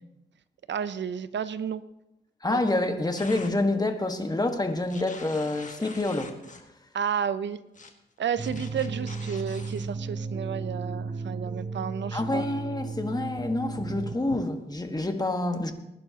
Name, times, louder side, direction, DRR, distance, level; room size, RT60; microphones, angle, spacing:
voice 1, 0.7-1.8 2.5-2.6 6.9-7.6 8.2-12.5 14.3-14.4, right 7 dB, 80° right, 0.6 m, -31 dB
voice 2, 2.4-6.4 12.1-15.7, left 2 dB, 20° left, 1.5 m, -27 dB
sound 1, 3.2-3.5 4.9-6.7 7.7-7.9 8.4-9.9, left 3 dB, 45° left, 1.7 m, -45 dB
sound 2, 8.4-14.2, right 4 dB, 30° right, 0.8 m, -34 dB
21.0 x 11.0 x 2.9 m
cardioid pair, 70°, 18 cm